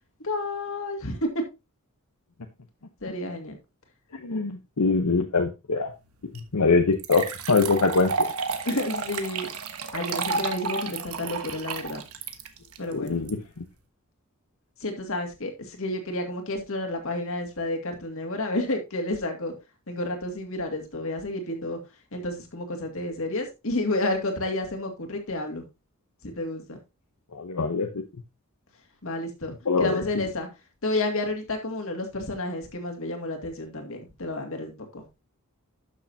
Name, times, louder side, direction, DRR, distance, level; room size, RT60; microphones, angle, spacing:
voice 1, 0.2-1.3 3.0-3.6 8.7-9.5 9.9-12.0 12.8-13.3 14.8-19.5 19.9-21.8 22.1-25.6 26.2-26.8 29.0-30.5 30.8-35.2, left 2 dB, 65° left, 3 dB, 2.2 m, -30 dB
voice 2, 4.2-5.9 6.3-8.1 13.0-13.4 27.3-28.0 29.7-30.0, left 4 dB, 90° left, 5 dB, 0.9 m, -23 dB
sound 1, 6.3-6.4 7.0-13.3, right 4 dB, 70° right, 1.3 m, -31 dB
12.0 x 6.5 x 2.8 m, 0.25 s
head